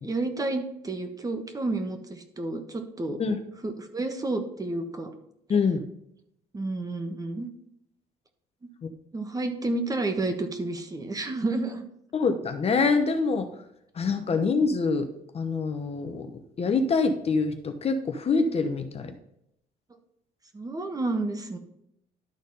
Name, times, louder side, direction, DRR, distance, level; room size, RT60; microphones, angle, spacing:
voice 1, 0.0-3.2 3.6-5.1 6.5-7.5 8.6-8.7 9.1-11.9 20.5-21.6, right 2 dB, 20° right, 7 dB, 1.2 m, -30 dB
voice 2, 5.5-5.8 12.1-13.5 13.9-15.1 15.3-16.3 16.6-19.1, left 4 dB, 35° left, 7 dB, 0.9 m, -25 dB
11.5 x 4.1 x 5.4 m, 0.76 s
cardioid pair, 110°, 17 cm